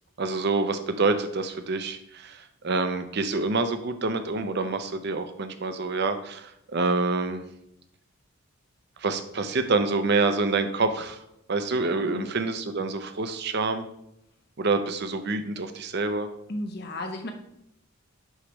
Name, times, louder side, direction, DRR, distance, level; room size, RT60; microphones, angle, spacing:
voice 1, 0.2-7.4 9.0-11.2 11.5-13.8 14.6-16.3, right 3 dB, 45° right, 9 dB, 0.6 m, -27 dB
voice 2, 16.5-17.3, left 1 dB, 45° left, 4 dB, 0.8 m, -33 dB
6.4 x 3.3 x 6.0 m, 0.79 s
head